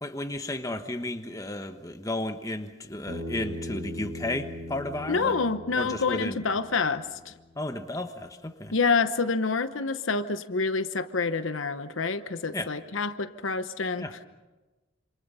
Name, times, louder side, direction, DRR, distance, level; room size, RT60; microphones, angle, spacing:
voice 1, 0.0-5.4 5.8-6.4 7.5-8.7 12.5-12.7 14.0-14.1, left 1 dB, 15° left, 6 dB, 1.2 m, -33 dB
Bass guitar, 3.1-7.4, left 1 dB, 70° right, 4.1 m, -39 dB
voice 2, 5.1-7.3 8.7-14.3, left 4 dB, 75° left, 10 dB, 1.0 m, -27 dB
27.5 x 27.0 x 5.6 m, 1.2 s
head